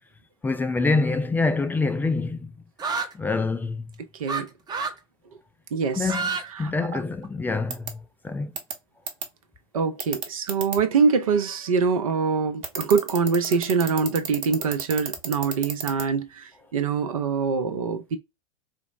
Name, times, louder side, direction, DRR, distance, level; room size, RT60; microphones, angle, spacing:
voice 1, 0.4-2.5 3.1-3.9 6.0-8.5, left 3 dB, 10° left, 0.4 m, -26 dB
sound 1, 2.8-3.1 4.3-4.4 4.7-5.0 5.9-6.4 6.8-7.5, right 4 dB, 20° right, 0.7 m, -28 dB
voice 2, 5.7-6.1 6.6-6.7 9.7-18.2, right 5 dB, 70° right, 0.7 m, -24 dB
sound 2, 7.7-7.9 8.6-8.7 9.1-9.2 10.0-10.8 12.6-16.0, right 6 dB, 40° right, 1.0 m, -30 dB
4.3 x 2.0 x 2.4 m
figure-of-eight pair, 90°, 19 cm